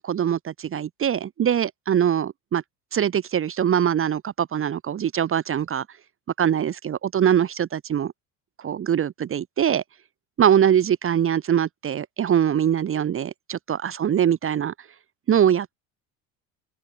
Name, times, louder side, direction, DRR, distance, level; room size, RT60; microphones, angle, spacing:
voice 1, 0.0-2.6 2.9-5.8 6.4-8.1 8.6-9.8 10.4-14.7 15.3-15.8, right 9 dB, 30° right, 1.0 m, -22 dB
open air
supercardioid pair, 85°, 40 cm